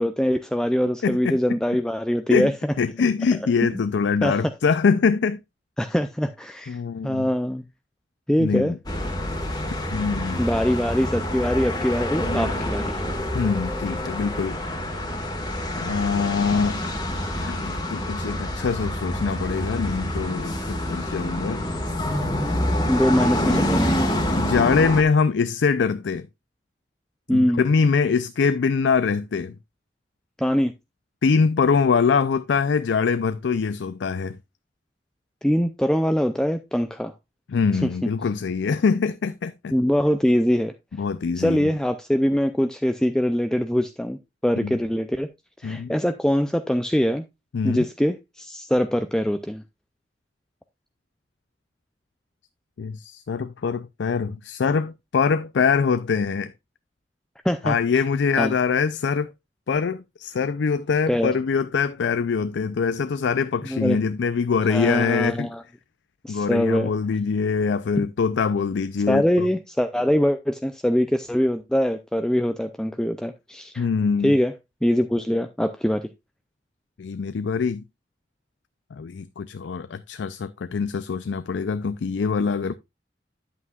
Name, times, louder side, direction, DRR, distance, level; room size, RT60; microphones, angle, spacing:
voice 1, 0.0-2.7 3.7-3.8 4.2-4.4 5.8-7.7 8.3-8.7 10.4-13.0 22.9-23.9 27.3-27.6 30.4-30.7 35.4-37.1 37.8-37.9 39.7-40.7 41.4-45.3 45.6-47.2 47.6-49.6 57.4-57.8 58.4-58.5 61.1-61.3 63.7-64.0 64.7-65.6 66.2-66.9 69.1-73.8 74.2-74.5 74.8-76.1, equal, 5° left, 0.4 m, -23 dB
voice 2, 1.0-1.4 2.3-2.5 2.8-5.4 6.7-7.3 8.4-8.8 9.9-10.4 13.3-14.6 15.8-16.8 17.4-21.6 24.4-26.3 27.3-29.6 31.2-34.4 37.5-39.7 41.0-41.7 44.6-44.7 45.6-45.9 47.5-47.8 52.8-56.5 57.6-59.3 59.7-65.5 66.3-69.5 73.8-74.3 77.0-77.8 78.9-82.7, left 5 dB, 80° left, 0.4 m, -23 dB
sound 1, 8.9-25.0, left 1 dB, 20° left, 1.5 m, -27 dB
9.5 x 8.3 x 2.3 m
head